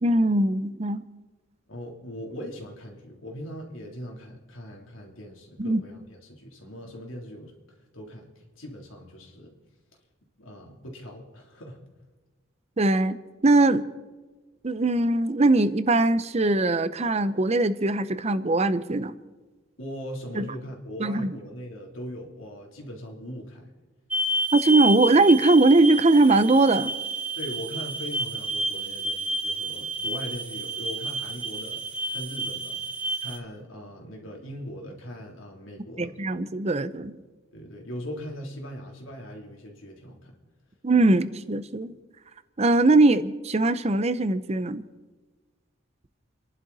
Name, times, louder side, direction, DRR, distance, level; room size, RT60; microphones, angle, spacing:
voice 1, 0.0-1.0 5.6-5.8 12.8-13.2 13.4-13.8 14.6-19.1 20.4-20.5 21.0-21.3 24.5-26.9 36.0-37.2 40.8-41.9 42.6-44.8, right 2 dB, 35° right, 13 dB, 0.6 m, -21 dB
voice 2, 1.7-7.5 7.9-8.3 8.6-9.5 10.4-11.8 19.8-23.7 27.4-32.8 33.2-36.2 37.5-40.3, equal, 90° left, 0 dB, 3.3 m, -40 dB
sound 1, 24.1-33.4, right 2 dB, 5° right, 1.2 m, -30 dB
29.5 x 11.5 x 4.1 m, 1.3 s
head